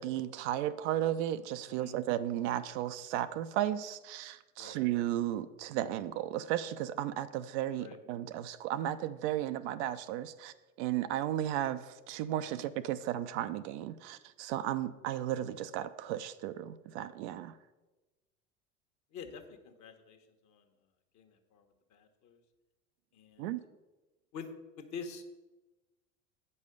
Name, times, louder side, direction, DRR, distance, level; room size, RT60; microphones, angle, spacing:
voice 1, 0.0-17.5 23.4-23.6, right 12 dB, 60° right, 12 dB, 0.6 m, -34 dB
voice 2, 1.7-2.0 4.6-4.8 7.8-8.0 12.5-12.7 19.1-20.7 21.1-22.4 23.1-23.6 24.3-24.5 24.8-25.2, left 6 dB, 45° left, 5 dB, 1.4 m, -47 dB
8.2 x 5.4 x 6.6 m, 1.1 s
hypercardioid pair, 75°, 40 cm